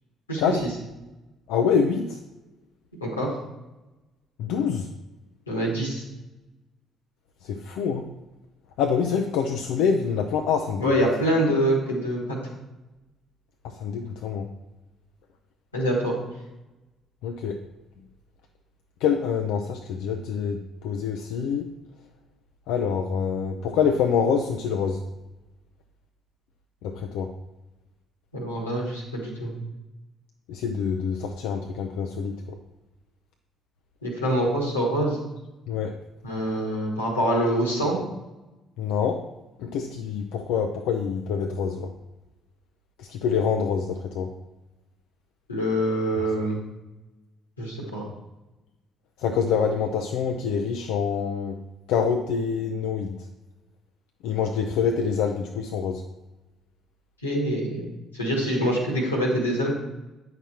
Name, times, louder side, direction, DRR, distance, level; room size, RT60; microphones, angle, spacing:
voice 1, 1.5-2.2 4.4-4.9 7.4-8.1 8.8-11.1 13.6-14.5 17.2-17.6 19.0-21.7 22.7-25.0 26.8-27.3 30.5-32.6 35.7-36.0 38.8-39.3 39.6-41.9 43.0-44.3 46.2-46.3 49.2-51.6 51.9-53.2 54.2-56.0, left 6 dB, 65° left, 4 dB, 0.5 m, -26 dB
voice 2, 5.5-6.0 10.8-12.2 15.7-16.1 28.3-29.6 34.0-35.2 36.2-38.0 45.5-46.6 47.6-48.0 57.2-57.9 58.1-59.7, right 1 dB, 90° left, -2 dB, 1.6 m, -25 dB
9.0 x 5.9 x 4.4 m, 1.0 s
figure-of-eight pair, 45°, 0 cm